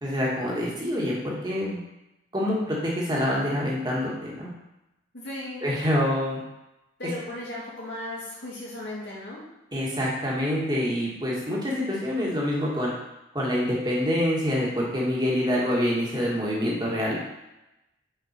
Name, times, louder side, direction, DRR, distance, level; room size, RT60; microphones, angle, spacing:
voice 1, 0.0-1.8 2.3-4.5 5.6-6.4 7.0-7.1 9.7-12.9 13.3-17.2, left 1 dB, 20° right, -5 dB, 1.6 m, -26 dB
voice 2, 5.1-5.7 7.0-9.4, left 1 dB, 60° left, -6 dB, 2.4 m, -36 dB
5.9 x 5.1 x 4.3 m, 0.93 s
head